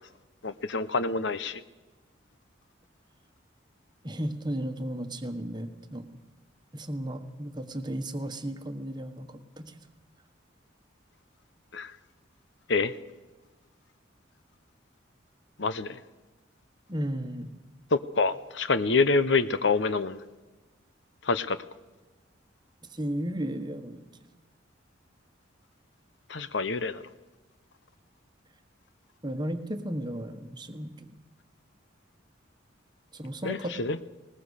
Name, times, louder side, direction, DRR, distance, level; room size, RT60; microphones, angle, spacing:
voice 1, 0.4-1.6 11.7-11.9 12.7-12.9 15.6-16.0 17.9-20.2 21.2-21.6 26.3-27.0 33.4-34.0, left 3 dB, 65° left, 13 dB, 0.8 m, -26 dB
voice 2, 4.0-6.1 6.7-9.7 16.9-17.5 22.9-24.0 29.2-31.2 33.1-33.7, right 1 dB, 20° right, 8 dB, 1.3 m, -34 dB
20.5 x 20.0 x 6.5 m, 1.2 s
head